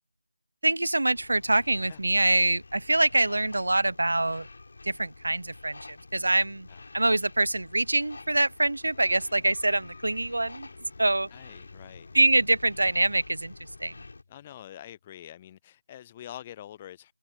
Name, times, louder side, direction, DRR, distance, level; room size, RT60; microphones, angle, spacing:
voice 1, 0.6-4.5 4.9-6.7 6.9-10.7 11.0-11.3 12.1-13.5 13.8-13.9, right 2 dB, 75° right, 0.8 m, -25 dB
sound 1, 1.1-14.2, left 3 dB, 55° left, 4.7 m, -48 dB
sound 2, 8.9-15.1, left 4 dB, 40° left, 4.9 m, -56 dB
voice 2, 11.3-12.3 14.3-17.1, left 11 dB, 15° left, 0.4 m, -46 dB
figure-of-eight pair, 170°, 0 cm